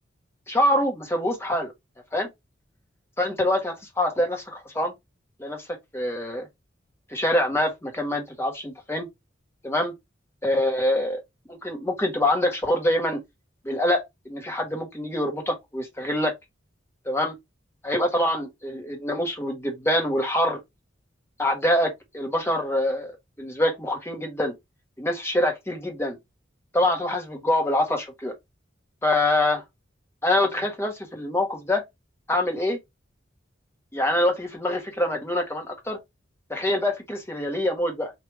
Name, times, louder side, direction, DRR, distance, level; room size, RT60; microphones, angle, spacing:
voice 1, 0.5-1.7 2.1-2.3 3.2-4.9 5.4-5.6 5.9-6.5 7.1-9.1 9.6-9.9 10.4-11.2 11.5-13.2 13.6-16.3 17.0-17.3 17.8-20.6 21.4-24.5 25.0-26.2 26.7-28.3 29.0-29.6 30.2-31.8 32.3-32.8 33.9-36.0 36.5-38.1, left 1 dB, 15° left, 1.3 m, -25 dB
3.4 x 2.9 x 4.4 m
head